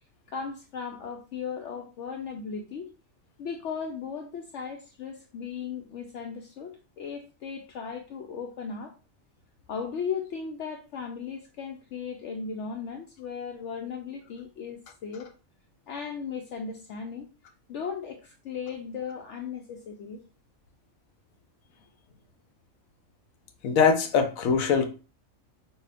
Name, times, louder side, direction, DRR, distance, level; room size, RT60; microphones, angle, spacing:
voice 1, 0.3-2.9 3.4-8.9 9.7-15.3 15.9-17.3 17.7-20.2, left 6 dB, 70° left, 0.8 m, -36 dB
voice 2, 23.6-24.9, left 6 dB, 90° left, 1.2 m, -22 dB
6.1 x 2.3 x 3.4 m
omnidirectional pair, 1.4 m